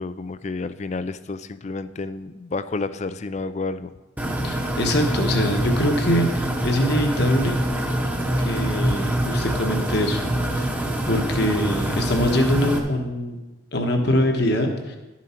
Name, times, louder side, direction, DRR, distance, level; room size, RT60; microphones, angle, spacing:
voice 1, 0.0-3.9, left 3 dB, 35° left, 13 dB, 0.4 m, -30 dB
sound 1, 4.2-12.8, right 1 dB, 10° right, 0.9 m, -25 dB
voice 2, 4.4-7.5 8.4-10.2 10.5-10.8 11.1-13.4 13.7-15.0, equal, 55° left, 3 dB, 1.3 m, -23 dB
11.5 x 7.4 x 4.5 m, 1.1 s
head